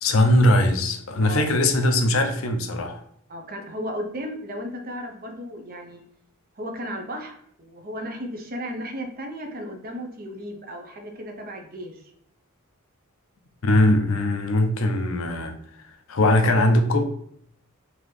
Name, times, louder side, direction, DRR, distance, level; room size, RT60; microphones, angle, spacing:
voice 1, 0.0-3.0 13.6-15.6 16.1-17.0, left 1 dB, 65° left, 0.5 m, -20 dB
voice 2, 3.3-6.0 6.6-12.0, equal, 40° right, 0.7 m, -35 dB
3.8 x 2.8 x 3.2 m
head